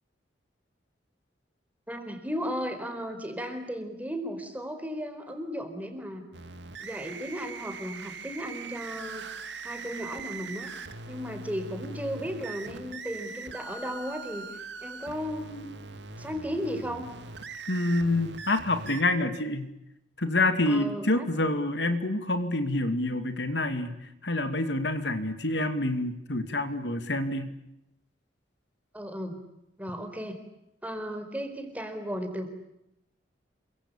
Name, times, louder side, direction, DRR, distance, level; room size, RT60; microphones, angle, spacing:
voice 1, 1.9-6.2 6.8-9.3 9.6-10.7 11.1-14.5 14.8-15.7 16.2-17.1 20.7-21.3 28.9-29.4 29.8-30.4 30.8-32.5, equal, 10° right, 7 dB, 4.5 m, -35 dB
sound 1, 6.3-19.0, right 4 dB, 70° right, 2.2 m, -41 dB
voice 2, 17.7-19.7 20.2-27.5, left 2 dB, 65° left, 9 dB, 2.4 m, -27 dB
28.5 x 24.5 x 8.5 m, 0.85 s
head